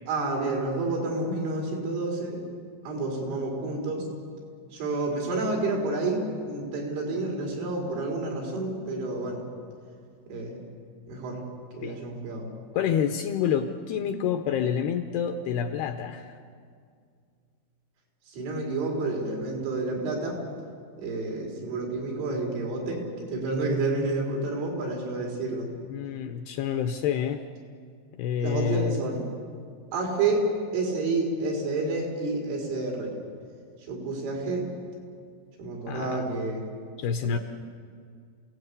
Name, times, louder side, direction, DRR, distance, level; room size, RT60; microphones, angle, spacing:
voice 1, 0.1-2.4 2.8-4.1 4.7-9.4 10.3-10.6 11.1-11.4 11.7-12.5 18.3-20.4 21.0-25.7 28.4-29.2 29.9-33.1 33.9-34.7 35.6-36.6 37.2-37.4, right 2 dB, 85° right, 0 dB, 6.7 m, -29 dB
voice 2, 12.7-16.4 25.9-27.4 28.2-29.0 35.9-36.3 37.0-37.4, left 8 dB, 80° left, 7 dB, 2.4 m, -28 dB
28.0 x 17.5 x 8.3 m, 2.2 s
omnidirectional pair, 5.4 m